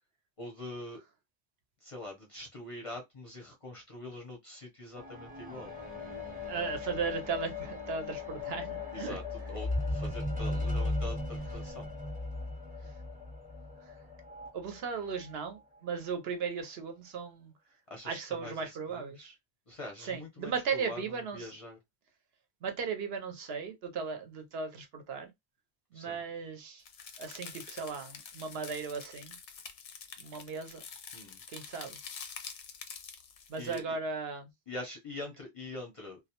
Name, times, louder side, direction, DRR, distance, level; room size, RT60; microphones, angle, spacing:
voice 1, 0.4-1.0 1.8-5.7 8.9-9.2 9.5-11.9 17.9-19.3 19.7-21.8 25.9-26.2 31.1-31.4 33.6-34.0 34.7-36.2, left 1 dB, 40° left, 0.6 m, -44 dB
sound 1, 5.0-14.5 15.3-15.4, left 2 dB, 10° right, 0.5 m, -37 dB
voice 2, 6.4-9.2 13.9-14.0 14.5-17.5 18.0-19.4 20.0-21.5 22.6-25.3 25.9-26.8 27.2-29.4 30.2-30.8 31.5-32.0 33.5-34.5, right 5 dB, 65° right, 0.8 m, -37 dB
sound 2, 26.8-33.8, left 6 dB, 85° left, 0.9 m, -47 dB
2.2 x 2.1 x 2.8 m
omnidirectional pair, 1.1 m